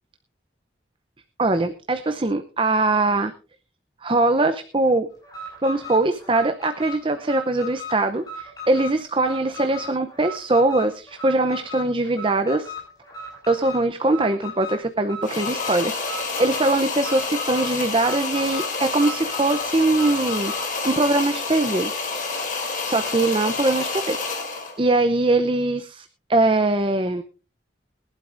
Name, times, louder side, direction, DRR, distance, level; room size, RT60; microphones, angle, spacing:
voice 1, 1.4-3.3 4.0-5.1 5.6-12.7 13.5-21.9 22.8-24.5 24.8-27.2, right 2 dB, 30° right, 8 dB, 0.7 m, -22 dB
Alarm, 5.2-20.7, left 2 dB, 20° left, 6.0 m, -37 dB
sound 1, 15.2-24.8, left 4 dB, 45° left, 2.8 m, -29 dB
21.5 x 11.5 x 2.6 m, 0.35 s
head